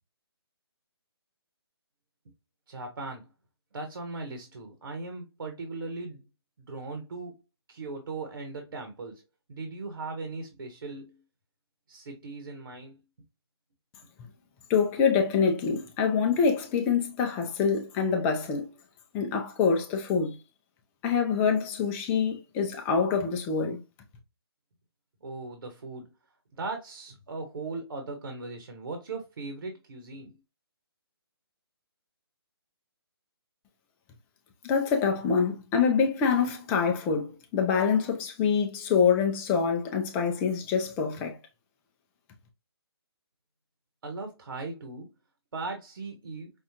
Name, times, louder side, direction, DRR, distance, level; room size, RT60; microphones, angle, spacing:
voice 1, 2.7-3.3 3.7-6.2 6.6-7.4 7.7-9.2 9.5-11.2 11.9-13.0 25.2-26.1 26.5-30.4 44.0-45.1 45.5-46.5, right 3 dB, 65° right, 1.3 m, -38 dB
voice 2, 14.7-18.7 19.1-20.4 21.0-23.8 34.6-41.4, left 6 dB, 10° left, 0.5 m, -25 dB
5.5 x 2.4 x 2.9 m
hypercardioid pair, 155°, 14 cm